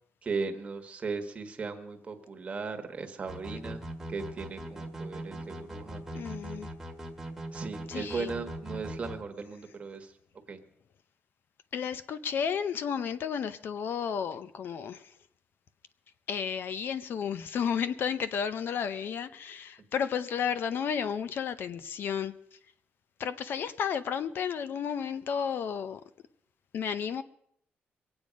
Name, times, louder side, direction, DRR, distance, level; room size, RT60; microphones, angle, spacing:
voice 1, 0.2-3.8 4.1-6.0 7.5-10.1 10.5-10.6, right 4 dB, 30° right, 1.4 m, -37 dB
sound 1, 3.3-9.2, right 1 dB, 5° right, 1.6 m, -40 dB
voice 2, 6.1-6.7 7.9-8.3 11.7-15.1 16.3-22.3 23.2-26.0 26.7-27.2, left 7 dB, 60° left, 0.7 m, -32 dB
23.0 x 8.8 x 5.2 m
cardioid pair, 155°, 4 cm